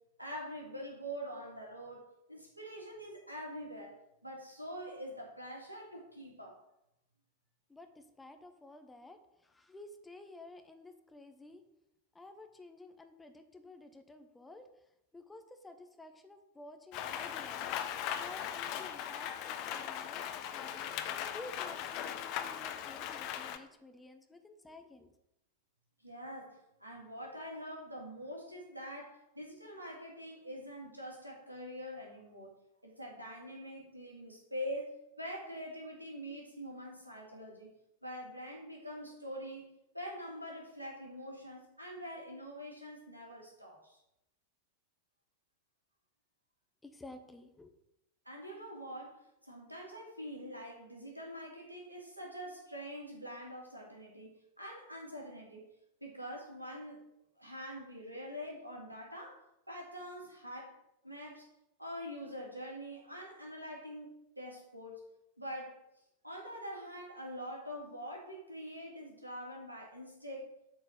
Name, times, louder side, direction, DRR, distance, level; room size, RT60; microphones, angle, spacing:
voice 1, 0.2-6.6 26.0-32.5 32.8-37.7 38.0-44.0 48.2-55.6 56.0-57.0 57.4-60.8 61.0-61.5 61.8-65.1 65.4-65.8 66.2-70.5, equal, 85° right, -1 dB, 2.4 m, -45 dB
voice 2, 7.7-11.6 12.1-14.9 15.1-17.8 18.2-20.9 21.3-25.1 46.8-47.7, left 2 dB, 10° left, 7 dB, 0.9 m, -52 dB
Rain, 16.9-23.6, left 10 dB, 40° left, 0.7 m, -39 dB
8.0 x 4.4 x 6.7 m, 0.83 s
figure-of-eight pair, 90°, 0 cm